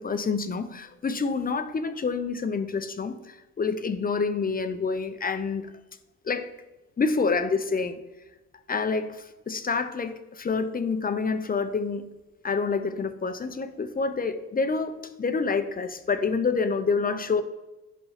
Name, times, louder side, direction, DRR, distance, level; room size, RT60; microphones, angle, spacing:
voice 1, 0.0-5.7 6.2-6.5 7.0-8.0 8.7-12.1 12.4-17.4, left 4 dB, 30° left, 9 dB, 0.6 m, -27 dB
5.6 x 5.4 x 5.7 m, 1.1 s
cardioid pair, 90°, 30 cm